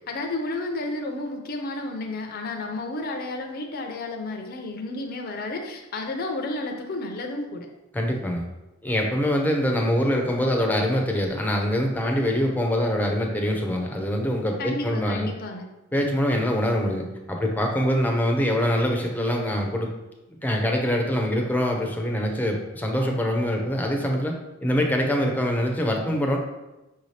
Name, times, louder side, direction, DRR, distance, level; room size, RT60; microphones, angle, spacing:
voice 1, 0.1-7.7 14.6-15.7, left 2 dB, 50° left, 2 dB, 0.5 m, -31 dB
voice 2, 7.9-8.4 8.8-15.3 15.9-19.9 20.4-24.3 24.6-26.4, equal, 10° left, 1 dB, 0.6 m, -24 dB
5.6 x 2.7 x 3.2 m, 1.0 s
head